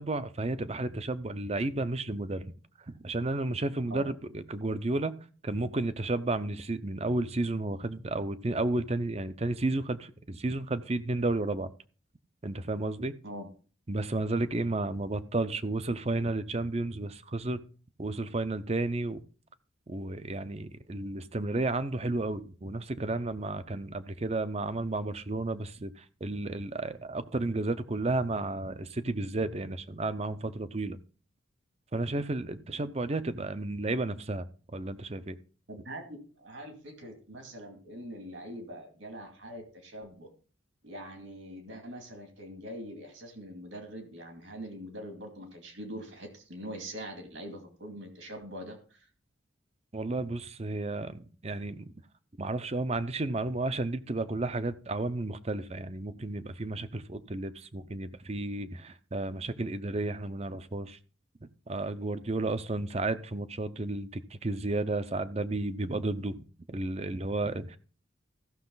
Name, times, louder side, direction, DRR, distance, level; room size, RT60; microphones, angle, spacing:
voice 1, 0.0-2.5 2.9-5.1 5.4-11.7 12.4-13.2 13.9-17.6 18.0-19.2 19.9-31.0 31.9-35.4 49.9-51.9 52.4-61.0 61.4-67.8, right 2 dB, 30° right, 0.6 m, -32 dB
voice 2, 35.7-40.3 40.8-49.1, equal, 75° right, 2.4 m, -43 dB
15.5 x 6.5 x 3.9 m
head